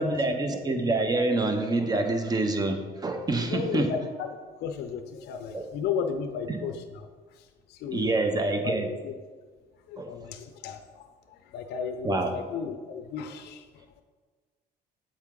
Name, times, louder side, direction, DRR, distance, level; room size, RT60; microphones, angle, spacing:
voice 1, 0.0-3.9 5.5-5.6 6.5-6.6 7.9-8.9 10.0-10.1 12.0-12.3, right 2 dB, 25° right, 6 dB, 0.8 m, -26 dB
voice 2, 3.4-4.3 4.6-7.1 7.3-8.1 8.4-8.7 9.0-9.1 9.9-13.8, left 6 dB, 75° left, 6 dB, 0.5 m, -34 dB
7.8 x 4.4 x 3.7 m, 1.4 s
cardioid pair, 110°, 17 cm